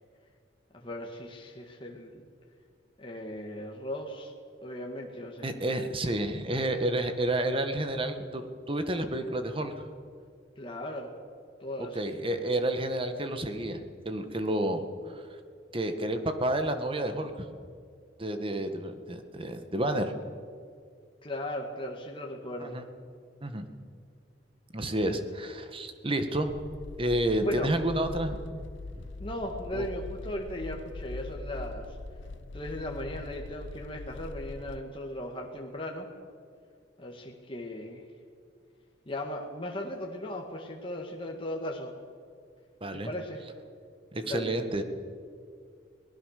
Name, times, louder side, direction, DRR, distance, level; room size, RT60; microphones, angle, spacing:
voice 1, 0.7-2.3 3.0-4.3 4.6-5.7 6.0-6.2 10.6-11.1 11.6-12.0 21.2-22.9 27.4-27.7 29.2-31.8 32.5-36.1 37.0-38.0 39.1-41.9 42.9-43.4 44.2-44.5, left 1 dB, 30° left, 0 dB, 2.0 m, -37 dB
voice 2, 5.4-9.9 11.9-15.2 15.7-17.5 18.2-20.1 22.6-22.8 23.4-23.7 24.7-26.5 27.0-28.4 29.0-29.1 29.7-29.8 42.8-43.1 44.1-44.8, right 1 dB, 30° right, 7 dB, 1.7 m, -30 dB
sound 1, 26.5-34.8, left 2 dB, 90° left, 0.8 m, -42 dB
23.5 x 19.0 x 6.7 m, 2.2 s
head